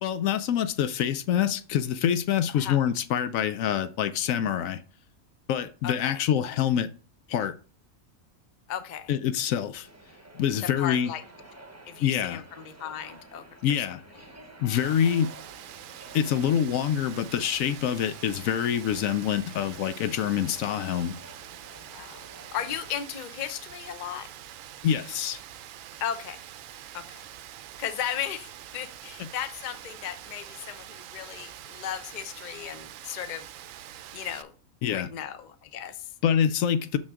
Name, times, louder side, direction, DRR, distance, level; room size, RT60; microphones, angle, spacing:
voice 1, 0.0-4.8 5.5-6.9 7.3-7.6 9.1-9.9 10.3-11.1 12.0-12.4 13.6-14.0 14.6-15.3 16.1-21.2 24.8-25.4 29.2-29.3 34.8-35.1 36.2-37.0, left 9 dB, 75° left, 1.0 m, -26 dB
voice 2, 5.8-6.2 8.7-9.1 10.8-11.2 11.9-13.9 15.0-15.1 21.9-22.2 22.5-24.3 26.0-26.4 26.9-27.3 27.8-33.5 34.1-34.5 34.9-36.1, left 9 dB, 45° left, 0.6 m, -36 dB
sound 1, 9.8-22.9, right 2 dB, 15° right, 0.7 m, -51 dB
Rain, 14.7-34.4, right 11 dB, 75° right, 0.9 m, -45 dB
6.3 x 6.2 x 3.6 m
omnidirectional pair, 1.5 m